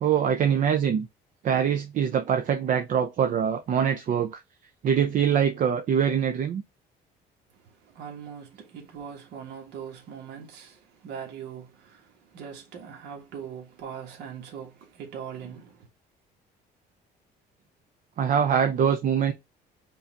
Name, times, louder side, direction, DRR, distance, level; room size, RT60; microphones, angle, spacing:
voice 1, 0.0-1.1 1.4-4.4 4.8-6.6 18.2-19.3, right 8 dB, 50° right, 0.6 m, -23 dB
voice 2, 7.5-15.9, right 7 dB, 80° right, 1.7 m, -41 dB
5.4 x 2.7 x 3.3 m
cardioid pair, 110°, 17 cm